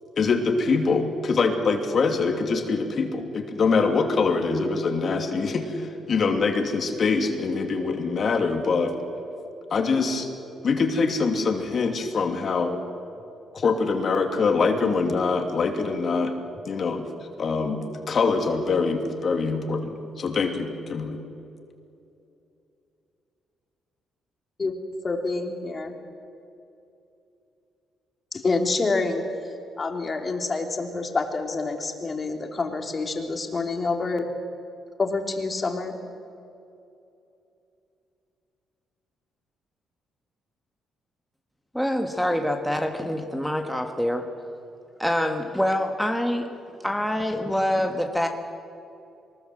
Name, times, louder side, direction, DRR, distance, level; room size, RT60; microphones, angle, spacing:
voice 1, 0.2-8.9 9.7-10.3 10.6-12.8 13.5-16.3 16.6-17.1 17.4-21.2, left 4 dB, 50° left, 4 dB, 2.7 m, -24 dB
voice 2, 24.6-26.0 28.3-29.2 29.8-34.3 35.0-35.9, left 3 dB, 35° left, 3 dB, 3.0 m, -27 dB
voice 3, 41.7-44.3 45.0-46.5 46.8-48.3, left 1 dB, ahead, 4 dB, 1.7 m, -25 dB
23.0 x 20.0 x 7.8 m, 2.7 s
cardioid pair, 90°, 0 cm